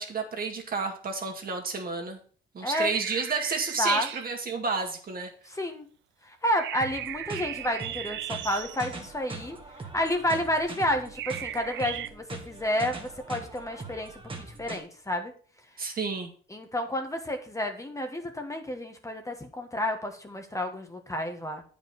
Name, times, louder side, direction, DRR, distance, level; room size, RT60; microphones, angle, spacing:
voice 1, 0.0-2.2 2.5-5.3 15.8-16.3, right 4 dB, 50° right, 3 dB, 2.1 m, -31 dB
sound 1, 2.7-4.4 6.6-8.9 11.2-12.1, right 12 dB, 70° right, 0.5 m, -37 dB
voice 2, 5.5-5.9 6.2-9.6 9.9-15.3 16.5-21.6, left 1 dB, 15° left, 5 dB, 1.4 m, -30 dB
sound 2, 6.8-14.8, right 3 dB, 25° right, 1.6 m, -42 dB
8.7 x 5.3 x 5.8 m, 0.43 s
cardioid pair, 90°, 20 cm